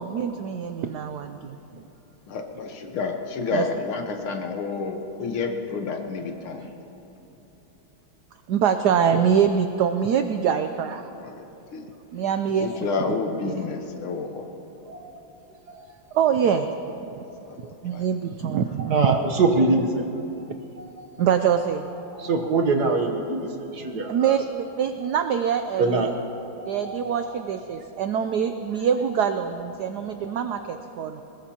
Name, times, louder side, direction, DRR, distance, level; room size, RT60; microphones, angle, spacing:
voice 1, 0.0-1.8 3.5-3.7 8.5-11.0 12.1-12.7 13.0-13.2 13.4-13.6 16.1-16.7 17.1-17.2 17.6-19.2 21.2-21.9 24.1-26.1 26.7-31.2, right 7 dB, 80° right, 8 dB, 0.9 m, -24 dB
voice 2, 2.3-6.7 11.2-11.4 11.7-11.9 12.6-14.5 16.4-16.5 17.5-18.1, left 4 dB, 75° left, 4 dB, 2.0 m, -30 dB
voice 3, 14.9-15.2 17.3-17.5 18.9-20.1 20.8-21.1 22.2-23.5 23.7-24.4 25.8-27.3, right 3 dB, 55° right, 3 dB, 1.4 m, -24 dB
21.5 x 20.5 x 2.9 m, 2.9 s
omnidirectional pair, 2.4 m